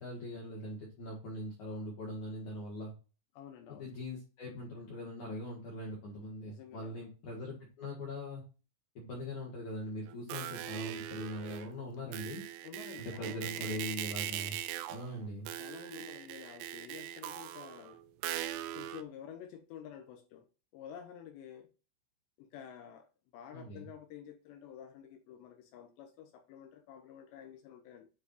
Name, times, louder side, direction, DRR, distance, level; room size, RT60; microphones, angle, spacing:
voice 1, 0.0-2.9 3.7-8.4 8.9-12.4 13.0-14.6 14.9-15.5 23.5-23.9, left 1 dB, 60° left, 2.2 m, -41 dB
voice 2, 3.4-3.9 6.4-7.0 12.6-13.9 15.6-18.0 18.7-20.5 20.7-21.7 22.4-23.1 23.3-28.1, left 9 dB, 80° left, 2.6 m, -50 dB
sound 1, 10.1-11.8 12.1-19.0, right 13 dB, 85° right, 3.1 m, -41 dB
9.8 x 4.6 x 2.5 m
omnidirectional pair, 5.8 m